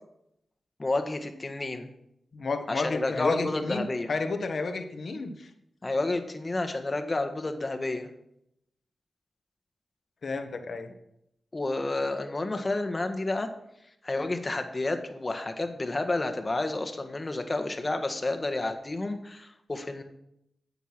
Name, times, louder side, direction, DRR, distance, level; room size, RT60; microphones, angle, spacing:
voice 1, 0.8-1.9 2.7-4.1 5.8-8.1 11.5-13.5 14.0-20.0, left 2 dB, 35° left, 6 dB, 1.7 m, -30 dB
voice 2, 2.3-5.5 10.2-10.9, left 3 dB, 65° left, 6 dB, 1.4 m, -31 dB
9.7 x 8.1 x 6.1 m, 0.79 s
cardioid pair, 50°, 0 cm